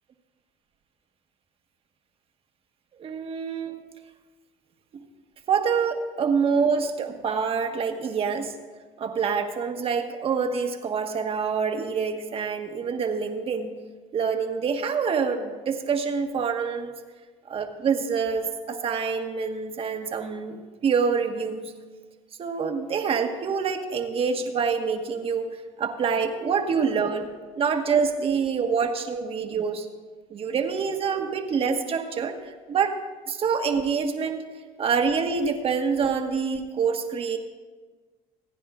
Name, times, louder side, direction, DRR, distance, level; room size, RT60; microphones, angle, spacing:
voice 1, 3.0-3.8 5.5-8.5 9.0-13.8 14.1-16.9 17.5-21.7 22.4-27.3 27.6-29.9 30.3-33.0 33.3-34.4 34.8-37.4, right 6 dB, 45° right, 5 dB, 1.4 m, -26 dB
27.0 x 9.8 x 2.4 m, 1.4 s
supercardioid pair, 85°, 13 cm